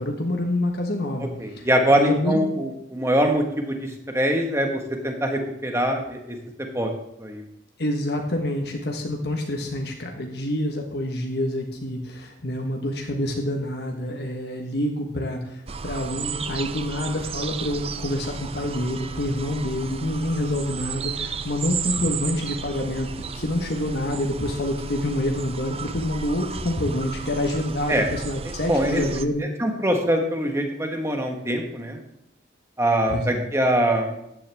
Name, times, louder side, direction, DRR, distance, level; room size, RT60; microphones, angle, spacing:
voice 1, 0.0-2.5 7.8-29.4 33.1-33.5, left 1 dB, 55° left, 2 dB, 1.4 m, -27 dB
voice 2, 1.4-6.4 6.7-6.9 7.2-7.4 27.9-28.1 28.7-29.0 29.6-32.0 32.8-34.1, right 1 dB, 15° right, 3 dB, 1.6 m, -23 dB
sound 1, 15.7-29.3, right 6 dB, 30° right, 0.5 m, -34 dB
14.5 x 10.0 x 3.6 m, 0.82 s
head